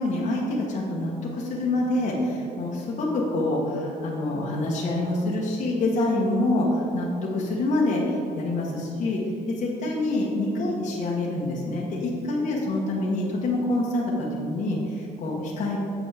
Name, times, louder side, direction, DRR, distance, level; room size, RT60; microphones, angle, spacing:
voice 1, 0.0-9.2 9.5-15.8, left 2 dB, 45° left, -3 dB, 1.2 m, -26 dB
7.7 x 6.1 x 3.4 m, 2.9 s
cardioid pair, 110°, 17 cm